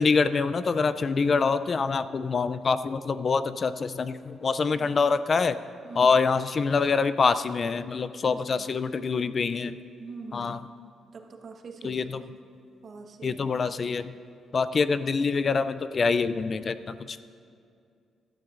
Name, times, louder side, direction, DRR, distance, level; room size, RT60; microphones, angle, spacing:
voice 1, 0.0-5.6 6.0-9.8 10.3-10.6 11.8-12.2 13.2-14.1 14.5-17.2, left 4 dB, 40° left, 12 dB, 0.3 m, -25 dB
voice 2, 5.8-6.2 8.2-8.7 10.0-10.6 11.1-12.1 12.8-13.8, right 4 dB, 50° right, 4 dB, 1.0 m, -44 dB
16.0 x 12.5 x 2.5 m, 2.4 s
cardioid pair, 105°, 0 cm